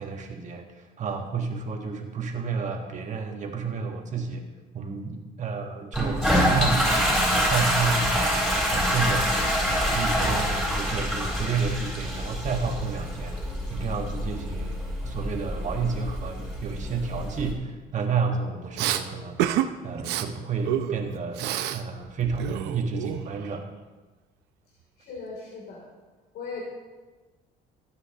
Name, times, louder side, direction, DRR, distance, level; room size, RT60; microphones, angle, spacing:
voice 1, 0.0-4.4 4.7-9.3 9.7-19.4 19.8-23.7, right 5 dB, 45° right, 3 dB, 1.7 m, -31 dB
Toilet flush, 5.9-17.5, equal, ahead, 4.3 m, -26 dB
Respiratory sounds, 18.8-19.0 19.4-19.7 20.0-20.3 20.7-21.8 22.1-23.5, right 12 dB, 90° right, 0.7 m, -28 dB
voice 2, 25.0-25.8 26.3-26.6, left 5 dB, 70° left, -4 dB, 3.2 m, -38 dB
20.0 x 9.2 x 3.0 m, 1.2 s
cardioid pair, 110°, 17 cm